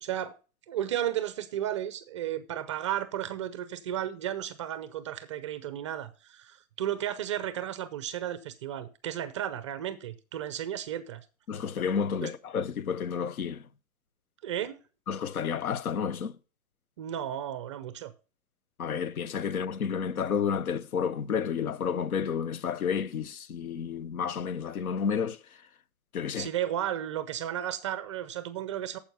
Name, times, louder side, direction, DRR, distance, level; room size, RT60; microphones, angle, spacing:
voice 1, 0.0-0.3 0.7-11.2 12.2-12.3 14.4-14.8 17.0-18.1 26.4-29.0, right 11 dB, 25° right, 0.4 m, -34 dB
voice 2, 11.5-13.6 15.1-16.3 18.8-25.4 26.1-26.5, left 7 dB, 80° left, 1.0 m, -31 dB
9.0 x 7.3 x 5.3 m
hypercardioid pair, 145°, 42 cm